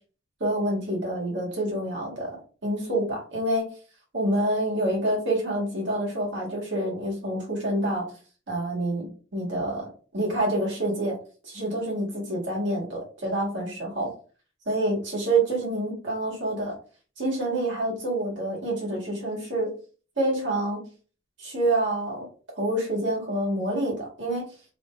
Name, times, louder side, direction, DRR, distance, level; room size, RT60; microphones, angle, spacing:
voice 1, 0.4-2.3 2.6-3.6 4.1-8.0 8.5-9.9 10.1-11.1 11.4-14.1 14.7-16.7 17.2-19.7 20.2-20.8 21.4-22.3 22.6-24.4, right 1 dB, 65° right, -3 dB, 1.9 m, -27 dB
3.4 x 2.8 x 3.8 m, 0.38 s
head